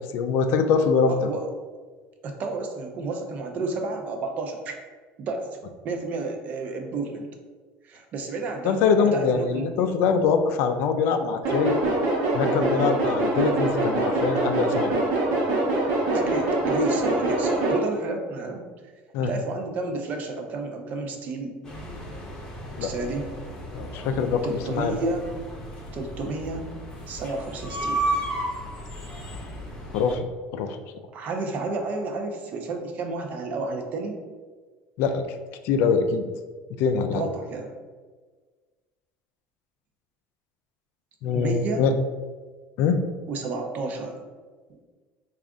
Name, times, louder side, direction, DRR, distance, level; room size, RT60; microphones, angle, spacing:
voice 1, 0.0-1.3 8.6-11.8 12.3-14.9 19.1-19.3 22.8-22.9 23.7-24.9 29.9-30.3 30.5-30.8 35.0-35.2 35.6-36.3 36.8-37.3 41.2-41.9 42.8-43.0, left 5 dB, 65° left, 7 dB, 0.3 m, -23 dB
voice 2, 1.1-1.5 2.2-4.8 5.2-5.5 5.8-7.3 7.8-8.8 9.1-9.7 16.1-18.6 19.2-21.6 22.8-23.3 24.4-25.3 25.9-26.7 27.1-28.0 31.1-34.2 37.1-37.7 41.3-41.8 43.3-44.2 44.7-44.8, right 3 dB, 40° right, 3 dB, 0.5 m, -31 dB
sound 1, 11.4-17.8, right 2 dB, 70° right, 1.0 m, -24 dB
sound 2, 21.6-30.1, right 1 dB, 15° left, 0.8 m, -34 dB
3.6 x 2.4 x 3.5 m, 1.4 s
cardioid pair, 150°, 4 cm